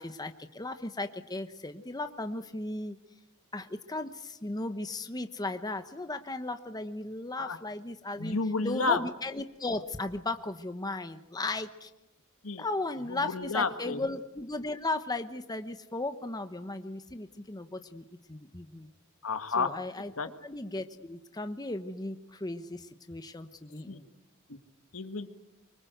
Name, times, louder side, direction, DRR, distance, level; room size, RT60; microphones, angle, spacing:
voice 1, 0.0-3.0 3.5-11.9 12.6-18.9 19.6-20.1 20.4-24.1, left 2 dB, 20° left, 8 dB, 1.0 m, -36 dB
voice 2, 8.2-9.0 12.4-12.6 13.1-14.0 19.2-19.7 20.2-20.3 23.9-24.0 24.5-24.6 24.9-25.4, left 4 dB, 85° left, 8 dB, 1.8 m, -31 dB
25.0 x 24.0 x 8.0 m, 0.94 s
head